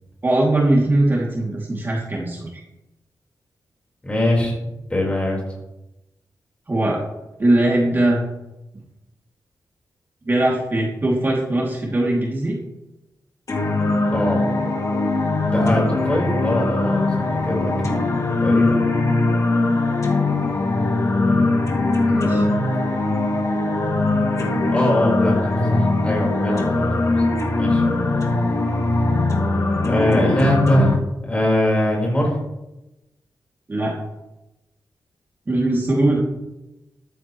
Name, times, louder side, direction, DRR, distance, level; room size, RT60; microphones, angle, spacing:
voice 1, 0.2-2.6 6.7-7.0 7.4-8.2 10.3-12.6 22.0-22.4 33.7-33.9 35.5-36.2, right 1 dB, 30° right, -4 dB, 2.8 m, -20 dB
voice 2, 4.0-5.4 14.1-14.4 15.5-18.0 18.4-18.8 24.7-27.1 27.6-27.8 29.9-31.0 31.2-32.4, left 1 dB, 15° left, -3 dB, 4.5 m, -22 dB
sound 1, 13.5-30.9, left 2 dB, 50° left, 2.5 m, -20 dB
14.0 x 13.0 x 3.2 m, 0.96 s
wide cardioid pair, 130°, 7 cm